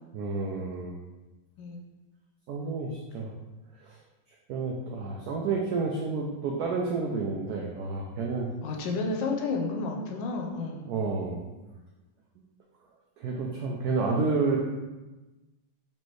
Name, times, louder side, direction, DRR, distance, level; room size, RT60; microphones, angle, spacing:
voice 1, 0.1-0.9 2.5-3.3 3.8-4.0 4.5-8.5 10.9-11.4 13.2-14.6, right 4 dB, 90° right, -1 dB, 0.8 m, -30 dB
voice 2, 8.6-10.9, left 3 dB, 75° left, 1 dB, 1.2 m, -31 dB
4.3 x 3.2 x 3.1 m, 1.1 s
omnidirectional pair, 2.2 m